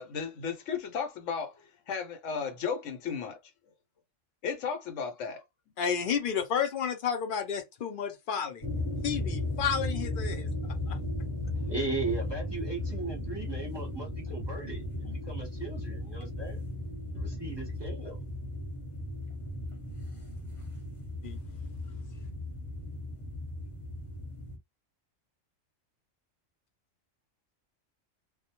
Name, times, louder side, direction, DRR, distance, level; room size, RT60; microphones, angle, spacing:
voice 1, 0.0-3.4 4.4-5.4, left 6 dB, 75° left, 1.0 m, -34 dB
voice 2, 5.8-8.6 9.0-10.5 10.9-11.0 21.2-21.4, left 7 dB, 60° left, 0.6 m, -31 dB
sound 1, 8.6-24.6, left 1 dB, 30° left, 0.9 m, -36 dB
voice 3, 11.7-16.6 17.1-18.2, right 3 dB, 25° right, 0.7 m, -37 dB
2.2 x 2.1 x 2.8 m
omnidirectional pair, 1.3 m